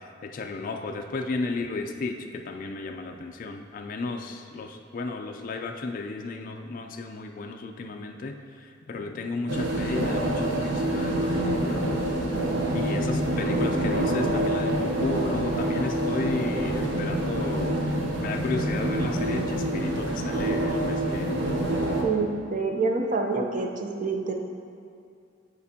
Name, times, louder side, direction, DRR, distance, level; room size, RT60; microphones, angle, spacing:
voice 1, 0.0-11.8 12.7-21.6, left 3 dB, 45° left, 4 dB, 0.4 m, -34 dB
sound 1, 9.5-22.0, right 1 dB, 70° right, 0.8 m, -26 dB
voice 2, 22.0-24.3, right 3 dB, 45° right, 3 dB, 0.6 m, -27 dB
9.6 x 4.3 x 2.8 m, 2.4 s
head